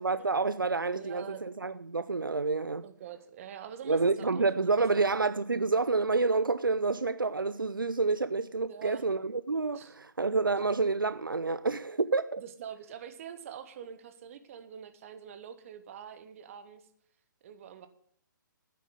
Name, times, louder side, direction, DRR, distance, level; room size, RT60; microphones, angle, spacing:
voice 1, 0.0-2.8 3.9-12.4, right 3 dB, 85° right, 0.6 m, -28 dB
voice 2, 0.9-1.4 2.8-5.1 8.7-9.1 9.7-9.9 12.4-16.9 17.4-17.9, right 8 dB, 40° right, 1.4 m, -45 dB
9.4 x 8.5 x 7.9 m
figure-of-eight pair, 130°, 11 cm